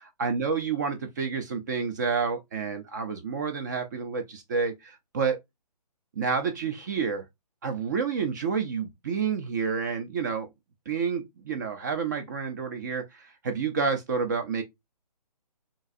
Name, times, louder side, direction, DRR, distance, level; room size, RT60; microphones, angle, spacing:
voice 1, 0.2-5.4 6.2-7.3 7.6-10.5 10.9-14.6, right 5 dB, 25° right, 0.4 m, -29 dB
3.7 x 2.5 x 2.5 m
figure-of-eight pair, 140°, 21 cm